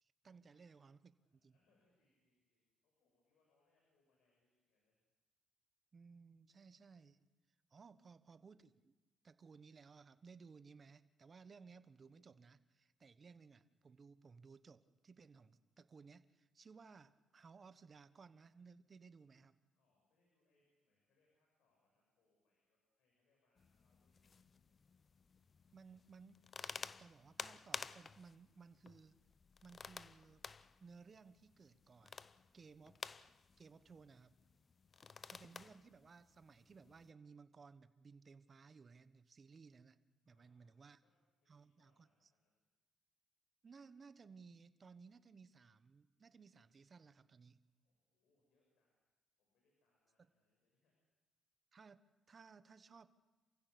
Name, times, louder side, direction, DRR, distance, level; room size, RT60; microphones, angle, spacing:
voice 1, 0.0-1.6 5.9-7.2 7.7-8.9 9.2-19.5 25.7-29.2 29.6-30.5 30.8-32.3 32.5-33.0 33.6-34.3 35.3-40.0 40.3-41.0 41.5-42.1 43.6-47.6 50.2-50.3 51.7-53.1, right 5 dB, 40° right, 13 dB, 1.1 m, -60 dB
voice 2, 1.2-5.0 7.8-8.1 19.8-24.9 34.9-35.7 40.3-42.6 47.6-48.9 49.4-51.1, left 2 dB, 80° left, -2 dB, 7.2 m, -84 dB
sound 1, 23.6-37.1, left 5 dB, 40° left, 0.7 m, -53 dB
28.0 x 16.0 x 6.7 m, 1.2 s
cardioid pair, 90°, 0 cm